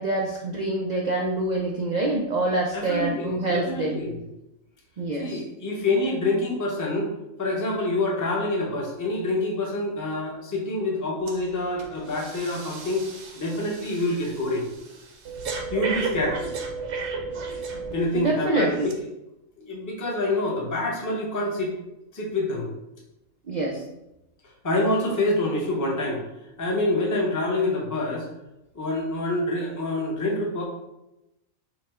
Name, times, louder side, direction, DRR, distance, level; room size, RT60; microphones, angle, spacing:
voice 1, 0.0-4.0 5.0-5.4 18.1-18.9 23.5-23.8, right 2 dB, 75° right, -1 dB, 0.4 m, -26 dB
voice 2, 2.7-4.2 5.2-7.1 7.4-13.0 13.3-14.6 15.5-16.4 17.9-18.9 19.6-21.7 22.1-22.7 24.6-26.2 26.6-28.3 28.7-30.6, left 2 dB, 20° left, -2 dB, 0.6 m, -26 dB
Breathing, 11.3-11.5 11.8-18.2 18.8-18.9, right 4 dB, 60° right, 0.9 m, -34 dB
5.9 x 2.2 x 3.6 m, 0.91 s
omnidirectional pair, 1.4 m